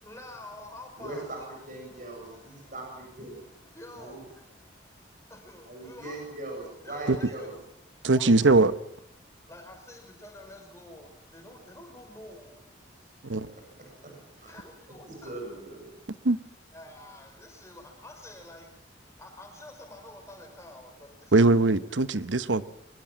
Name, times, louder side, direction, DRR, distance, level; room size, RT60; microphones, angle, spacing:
voice 1, 0.0-1.5 1.8-2.8 3.4-4.7 5.3-6.2 6.8-7.5 7.9-8.6 9.5-12.6 14.4-15.3 16.7-18.7 19.2-21.5, left 1 dB, 15° left, 5.8 m, -48 dB
voice 2, 1.0-1.4 1.7-3.4 4.0-4.2 5.7-7.5 14.0-14.1 14.4-14.5 15.1-15.9, right 2 dB, 45° right, 7.7 m, -40 dB
voice 3, 8.0-8.7 13.2-13.5 16.2-16.4 21.3-22.6, right 3 dB, 85° right, 1.0 m, -21 dB
23.0 x 21.5 x 7.7 m
head